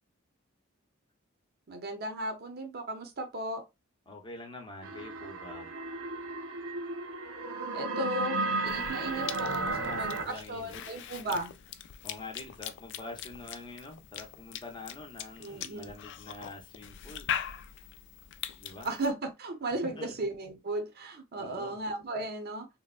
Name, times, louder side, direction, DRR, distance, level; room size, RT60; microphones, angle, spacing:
voice 1, 1.7-3.6 7.7-11.5 15.4-15.9 18.8-22.7, right 2 dB, 50° right, 0.6 m, -35 dB
voice 2, 4.1-5.7 9.6-10.8 11.2-11.4 12.0-17.3 18.6-18.9 19.8-20.1 21.3-21.8, left 2 dB, 25° left, 0.7 m, -45 dB
sound 1, 4.8-10.2, right 2 dB, 90° right, 0.6 m, -34 dB
Cough / Chewing mastication, 8.7-19.1, left 9 dB, 60° left, 0.3 m, -42 dB
3.4 x 2.1 x 2.3 m
head